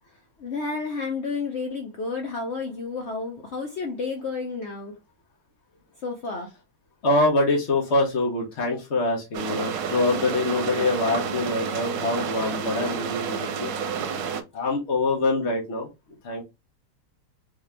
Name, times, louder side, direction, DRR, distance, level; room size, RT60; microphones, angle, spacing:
voice 1, 0.4-5.0 6.0-6.5, left 4 dB, 65° left, 0.6 m, -31 dB
voice 2, 7.0-13.7 14.5-15.9 16.2-16.4, left 2 dB, 45° left, 1.1 m, -24 dB
sound 1, 9.3-14.4, right 6 dB, 80° right, 1.3 m, -30 dB
3.6 x 2.7 x 3.3 m
omnidirectional pair, 1.9 m